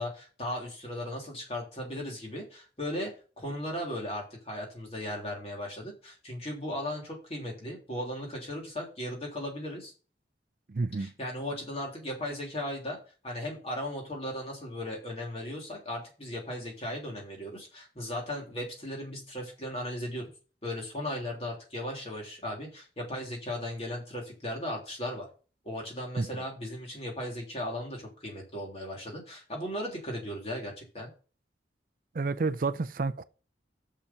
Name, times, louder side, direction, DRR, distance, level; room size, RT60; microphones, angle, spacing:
voice 1, 0.0-9.9 11.0-13.0 13.2-20.3 20.6-25.3 25.6-31.1, left 1 dB, 35° left, 3.2 m, -37 dB
voice 2, 10.7-11.1 26.2-26.3 32.1-33.2, right 3 dB, 50° right, 0.4 m, -30 dB
6.8 x 5.6 x 7.1 m
head